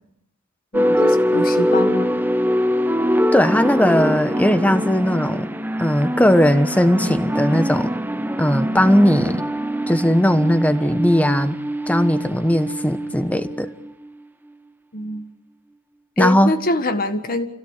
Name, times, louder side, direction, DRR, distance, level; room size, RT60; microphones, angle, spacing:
voice 1, 0.7-2.2 14.9-15.2 16.2-17.5, left 2 dB, 45° left, 8 dB, 1.8 m, -25 dB
sound 1, 0.7-14.1, equal, 10° right, 0.8 m, -23 dB
voice 2, 3.3-5.5 5.8-7.9 8.4-9.4 9.9-11.6 11.9-13.7 16.2-16.5, equal, 5° left, 11 dB, 1.1 m, -18 dB
28.0 x 17.0 x 8.3 m, 0.82 s
head